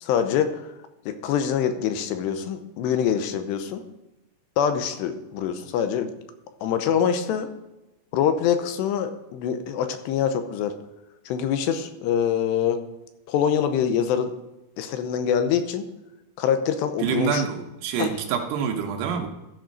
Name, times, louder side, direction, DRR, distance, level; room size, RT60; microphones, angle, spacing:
voice 1, 0.0-0.6 1.1-3.8 4.6-6.1 6.6-7.5 8.1-10.7 11.3-12.8 13.3-14.3 14.8-15.8 16.4-17.4 18.0-18.1, left 8 dB, 90° left, 9 dB, 2.8 m, -24 dB
voice 2, 17.0-19.3, right 7 dB, 80° right, 3 dB, 3.0 m, -26 dB
13.5 x 5.0 x 5.3 m, 0.95 s
omnidirectional pair, 5.0 m